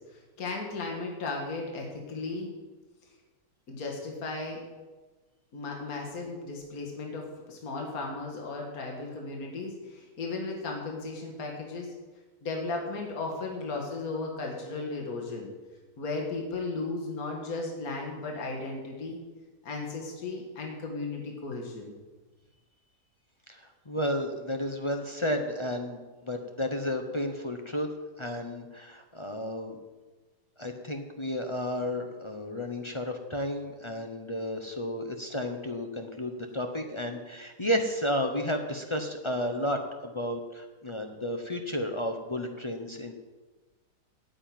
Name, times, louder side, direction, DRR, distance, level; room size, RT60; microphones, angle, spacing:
voice 1, 0.1-2.5 3.7-4.6 5.5-11.9 12.4-15.5 16.0-19.2 19.6-21.9, left 3 dB, 60° left, 0 dB, 2.2 m, -35 dB
voice 2, 23.5-27.9 28.2-29.8 30.6-43.2, left 1 dB, 25° left, 5 dB, 0.6 m, -32 dB
9.2 x 7.7 x 9.1 m, 1.2 s
omnidirectional pair, 1.8 m